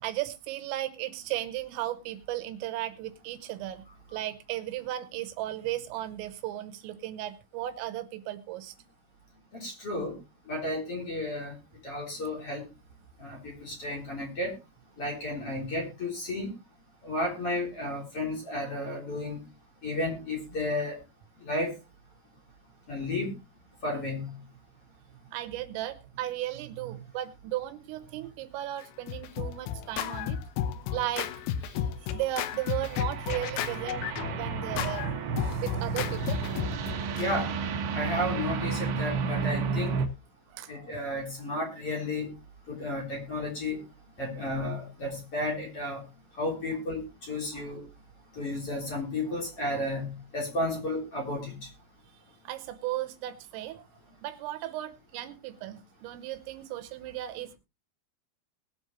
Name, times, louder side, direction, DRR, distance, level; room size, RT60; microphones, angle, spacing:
voice 1, 0.0-3.9 4.1-8.7 25.3-30.4 30.9-31.3 31.6-35.1 35.6-36.4 39.3-39.4 40.5-41.0 47.5-47.7 52.5-53.9 54.2-57.5, right 14 dB, 80° right, 11 dB, 3.5 m, -35 dB
voice 2, 9.5-10.1 10.5-11.5 11.8-12.7 13.2-14.5 15.0-16.5 17.0-19.4 19.8-21.0 21.4-21.7 22.9-23.3 23.8-24.3 37.1-37.5 37.9-40.0 40.7-42.3 42.7-43.8 44.2-46.0 46.4-47.8 48.4-51.6, left 1 dB, 30° left, -1 dB, 3.8 m, -32 dB
Scratching (performance technique), 28.8-37.3, left 9 dB, 80° left, 2.5 m, -33 dB
sound 1, 32.3-40.1, right 5 dB, 65° right, 2.8 m, -32 dB
21.0 x 7.8 x 3.0 m, 0.26 s
omnidirectional pair, 6.0 m